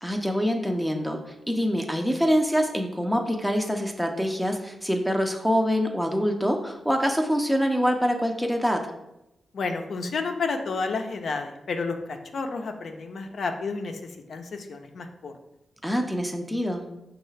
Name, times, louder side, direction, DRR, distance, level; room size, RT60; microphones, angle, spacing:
voice 1, 0.0-8.9 15.8-16.8, equal, ahead, 3 dB, 0.5 m, -25 dB
voice 2, 9.5-14.0 14.3-15.3, left 4 dB, 70° left, 5 dB, 0.5 m, -31 dB
5.3 x 2.3 x 3.2 m, 0.88 s
cardioid pair, 55°, 0 cm